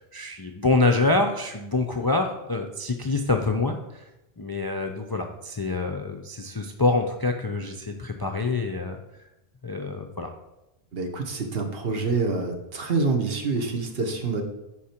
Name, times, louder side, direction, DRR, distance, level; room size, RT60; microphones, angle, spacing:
voice 1, 0.1-4.0 4.4-9.0 9.6-10.3, left 3 dB, 35° left, 4 dB, 0.4 m, -26 dB
voice 2, 10.9-14.4, right 4 dB, 65° right, 4 dB, 1.2 m, -26 dB
8.5 x 5.1 x 4.4 m, 0.95 s
omnidirectional pair, 1.1 m